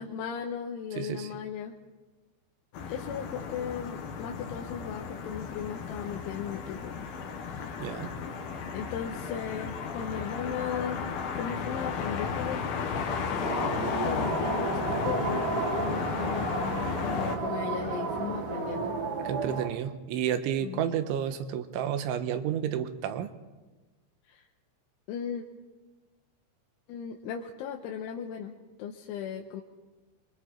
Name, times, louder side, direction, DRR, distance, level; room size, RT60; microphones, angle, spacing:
voice 1, 0.0-1.8 2.9-7.0 7.4-7.8 8.7-12.7 13.3-19.0 20.6-20.8 24.3-24.4 25.1-25.4 26.9-28.5 28.8-29.6, left 8 dB, 80° left, 2 dB, 3.3 m, -37 dB
voice 2, 1.0-1.3 7.8-8.1 19.2-23.3, right 9 dB, 80° right, 10 dB, 3.3 m, -31 dB
sound 1, 2.7-17.4, left 6 dB, 60° left, 2.9 m, -34 dB
sound 2, 13.4-19.7, right 4 dB, 60° right, 1.5 m, -32 dB
27.5 x 23.0 x 4.4 m, 1.2 s
omnidirectional pair, 5.7 m